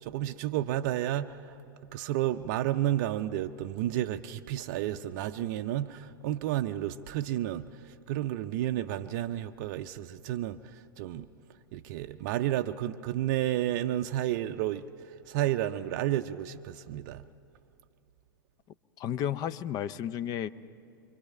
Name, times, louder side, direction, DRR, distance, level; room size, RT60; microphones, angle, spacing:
voice 1, 0.0-1.6 1.9-11.3 11.7-17.2, right 13 dB, 50° right, 0.5 m, -31 dB
voice 2, 19.0-20.5, left 10 dB, 35° left, 0.5 m, -32 dB
25.0 x 24.0 x 5.5 m
figure-of-eight pair, 100°, 12 cm